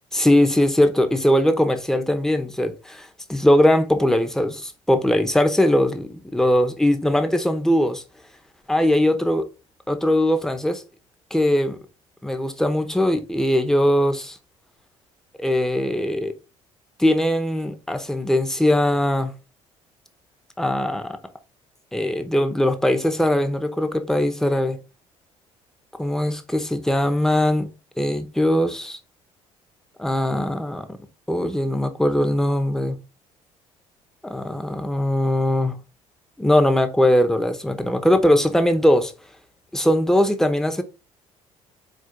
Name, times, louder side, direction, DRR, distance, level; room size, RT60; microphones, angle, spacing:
voice 1, 0.1-8.0 8.7-9.5 9.9-10.8 11.3-11.8 12.2-14.4 15.4-16.3 17.0-19.3 20.6-21.2 21.9-24.8 26.0-27.7 28.0-29.0 30.0-31.0 31.3-33.0 34.2-35.8 36.4-39.1 39.7-40.8, left 1 dB, 5° left, 0.8 m, -20 dB
4.3 x 2.5 x 4.5 m
figure-of-eight pair, 55°, 16 cm